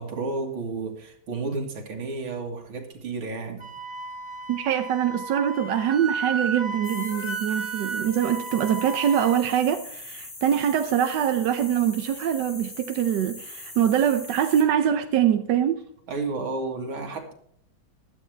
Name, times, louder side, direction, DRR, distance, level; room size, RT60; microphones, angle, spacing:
voice 1, 0.0-3.7 16.1-17.3, right 3 dB, 90° right, 2.8 m, -32 dB
Wind instrument woodwind instrument, 3.6-9.4, right 3 dB, 25° right, 0.7 m, -33 dB
voice 2, 4.5-15.8, right 9 dB, 65° right, 1.3 m, -24 dB
sound 1, 6.8-14.6, left 2 dB, 55° left, 4.0 m, -41 dB
15.5 x 12.0 x 3.4 m
omnidirectional pair, 2.2 m